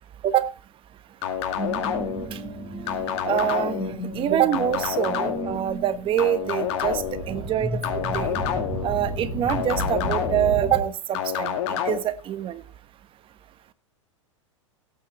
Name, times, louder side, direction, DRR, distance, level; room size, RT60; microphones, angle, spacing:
sound 1, 1.2-2.3 2.9-3.9 4.5-5.6 6.2-7.2 7.8-8.9 9.5-10.5 11.1-12.0, left 9 dB, 55° left, 2.3 m, -28 dB
sound 2, 1.5-10.8, right 1 dB, ahead, 6.2 m, -33 dB
voice 1, 3.3-3.8 4.1-7.0 7.3-8.4 8.8-11.5 11.9-12.6, right 11 dB, 30° right, 12 dB, 1.3 m, -25 dB
17.5 x 8.7 x 3.2 m, 0.30 s
hypercardioid pair, 105°, 17 cm